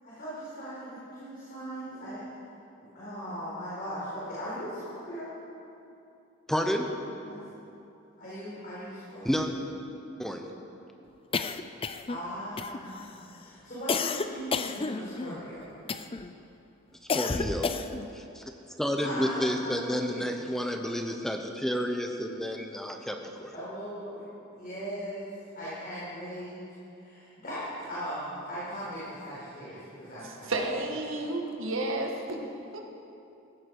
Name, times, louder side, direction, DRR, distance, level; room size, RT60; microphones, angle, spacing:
voice 1, 0.0-2.2 2.9-5.3 7.2-7.4 8.2-9.5 12.1-15.7 19.0-20.4 23.5-25.3 25.5-26.6 26.9-30.5, equal, 45° left, -9 dB, 4.4 m, -39 dB
voice 2, 6.5-6.9 9.2-9.5 10.2-10.4 17.1-17.7 18.1-18.4 18.8-23.5, equal, ahead, 3 dB, 0.9 m, -30 dB
sound 1, 11.3-12.2 12.6-13.1 13.9-15.4 15.9-16.3 17.1-18.1, left 4 dB, 25° left, 0.5 m, -31 dB
voice 3, 30.5-32.4 32.7-32.8, right 2 dB, 70° right, 1 dB, 1.9 m, -31 dB
16.5 x 14.5 x 4.8 m, 2.7 s
head